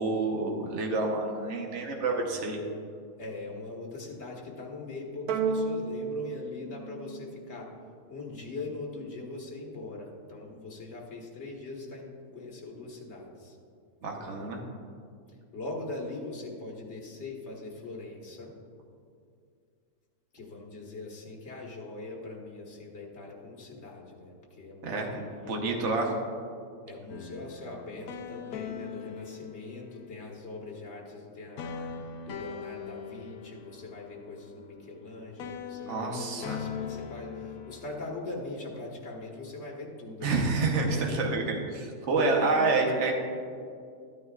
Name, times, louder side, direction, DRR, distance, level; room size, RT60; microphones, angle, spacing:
voice 1, 0.0-2.6 14.0-14.6 24.8-25.2 25.5-26.1 35.9-36.6 40.2-43.1, right 3 dB, 55° right, 1 dB, 1.3 m, -28 dB
voice 2, 3.2-7.7 8.1-13.6 14.2-14.4 15.5-18.5 20.3-26.2 26.9-31.8 32.2-41.1 42.2-42.8, left 2 dB, 45° left, -1 dB, 1.7 m, -41 dB
sound 1, 5.3-7.9, right 4 dB, 80° right, 1.1 m, -32 dB
sound 2, 27.1-30.2 31.6-35.1 35.4-37.9, left 6 dB, 75° left, 1.0 m, -41 dB
13.0 x 9.3 x 2.4 m, 2.3 s
omnidirectional pair, 1.6 m